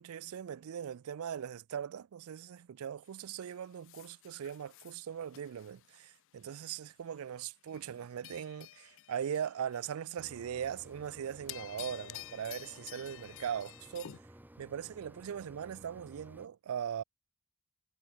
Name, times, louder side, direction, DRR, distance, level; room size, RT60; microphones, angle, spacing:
voice 1, 0.0-14.2 14.6-17.0, right 8 dB, 80° right, 0.4 m, -40 dB
sound 1, 3.1-6.7 7.2-7.4 7.7-10.1 10.5-10.9 11.3-14.2, left 14 dB, 65° left, 0.4 m, -51 dB
Mechanisms, 10.2-16.5, right 1 dB, 10° right, 1.1 m, -56 dB
head